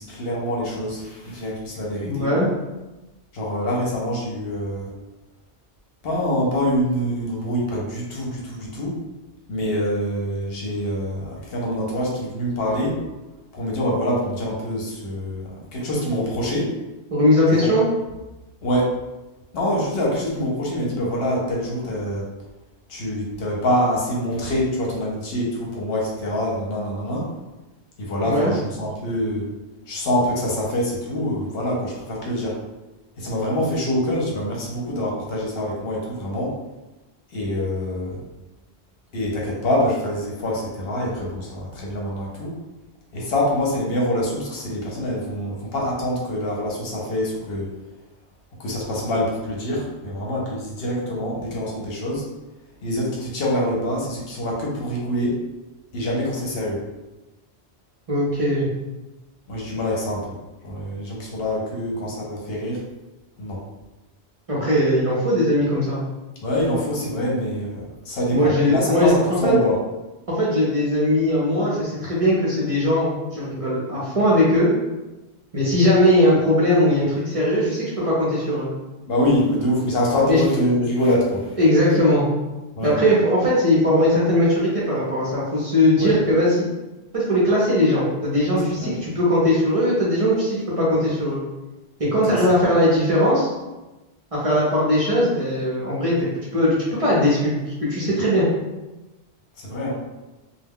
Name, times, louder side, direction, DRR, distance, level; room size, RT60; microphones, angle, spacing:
voice 1, 0.0-2.3 3.3-4.9 6.0-9.0 9.5-13.0 13.5-16.7 17.5-17.7 18.6-18.9 19.5-22.3 22.9-27.3 28.0-29.5 29.9-32.6 33.2-36.6 37.3-38.2 39.1-42.6 43.1-47.7 48.6-52.3 52.8-55.4 55.9-56.8 59.5-60.4 60.6-62.8 63.4-63.6 66.4-69.7 79.1-81.6 82.8-83.0 86.0-86.1 88.8-89.0 92.3-92.5 99.6-99.9, equal, 65° left, -3 dB, 0.9 m, -25 dB
voice 2, 2.0-2.5 17.1-17.8 28.2-28.5 58.1-58.7 64.5-66.0 68.3-69.6 70.3-74.7 75.5-78.7 80.3-80.4 81.6-82.2 82.8-86.7 87.1-91.4 92.0-93.5 94.3-96.3 96.5-97.5 97.8-98.5, left 1 dB, 40° right, -7 dB, 0.6 m, -19 dB
2.2 x 2.2 x 3.5 m, 1.1 s
omnidirectional pair, 1.1 m